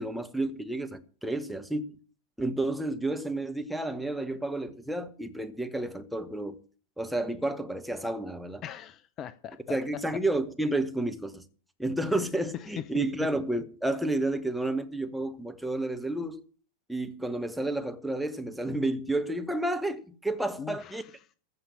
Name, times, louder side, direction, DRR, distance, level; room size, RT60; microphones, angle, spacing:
voice 1, 0.0-1.9 2.4-6.6 7.0-8.6 9.7-11.4 11.8-16.4 16.9-21.0, right 2 dB, ahead, 1.3 m, -31 dB
voice 2, 8.6-10.2 12.5-13.3 20.6-21.3, left 9 dB, 30° left, 0.6 m, -39 dB
15.0 x 5.7 x 8.7 m
figure-of-eight pair, 90°, 0 cm